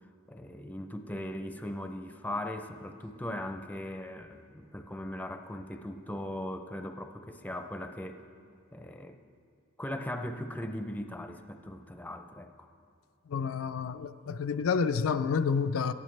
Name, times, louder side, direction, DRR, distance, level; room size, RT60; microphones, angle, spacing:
voice 1, 0.3-8.2 8.7-9.2 9.8-12.7, left 1 dB, 10° left, 0.5 m, -39 dB
voice 2, 13.3-15.9, left 5 dB, 80° left, 0.4 m, -29 dB
17.5 x 11.0 x 3.2 m
head